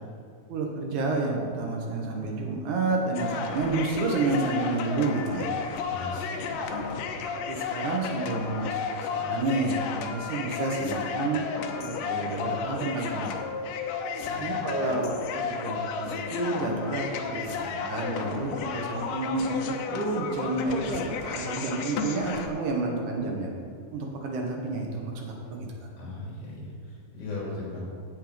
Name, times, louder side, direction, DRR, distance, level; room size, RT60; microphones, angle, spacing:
voice 1, 0.5-5.5 6.7-6.8 7.5-13.4 14.4-23.5 23.9-25.7, right 3 dB, 70° right, 1 dB, 2.7 m, -30 dB
sound 1, 3.2-22.5, left 6 dB, 80° left, 2.4 m, -33 dB
voice 2, 5.8-7.1 14.2-14.6 26.0-27.9, left 2 dB, 65° left, -5 dB, 4.4 m, -38 dB
15.5 x 5.6 x 5.1 m, 2.4 s
omnidirectional pair, 3.8 m